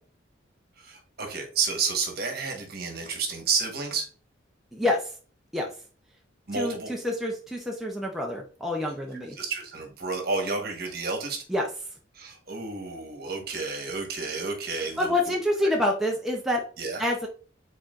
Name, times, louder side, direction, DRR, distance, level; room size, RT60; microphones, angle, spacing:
voice 1, 0.8-4.0 6.5-6.9 9.1-11.4 12.1-15.1 15.6-15.7 16.8-17.0, right 4 dB, 50° right, 2 dB, 1.2 m, -31 dB
voice 2, 6.5-9.4 11.5-11.6 15.0-16.6 17.0-17.3, left 1 dB, ahead, -1 dB, 0.6 m, -27 dB
4.7 x 4.0 x 2.5 m, 0.38 s
head